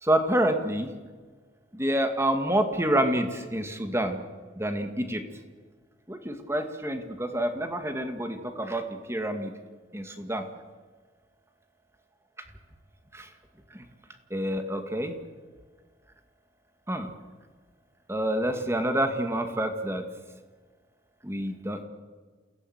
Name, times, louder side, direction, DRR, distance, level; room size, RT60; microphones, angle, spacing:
voice 1, 0.0-0.9 1.7-4.2 4.6-5.2 6.1-9.5 9.9-10.5 13.1-13.3 13.7-13.8 14.3-15.1 16.9-17.1 18.1-20.0 21.2-21.8, right 1 dB, 15° right, 6 dB, 2.1 m, -28 dB
28.0 x 17.0 x 8.1 m, 1.5 s
head